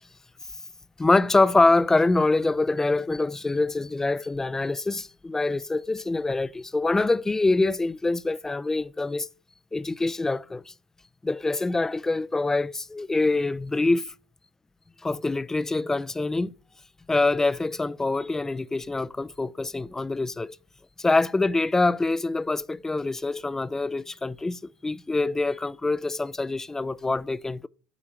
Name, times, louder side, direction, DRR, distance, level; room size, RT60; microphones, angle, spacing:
voice 1, 1.0-9.3 9.7-10.7 11.2-14.1 15.0-16.5 17.1-20.6 21.0-27.7, left 3 dB, 15° left, 0.3 m, -25 dB
8.8 x 3.0 x 6.2 m
hypercardioid pair, 75°, 4 cm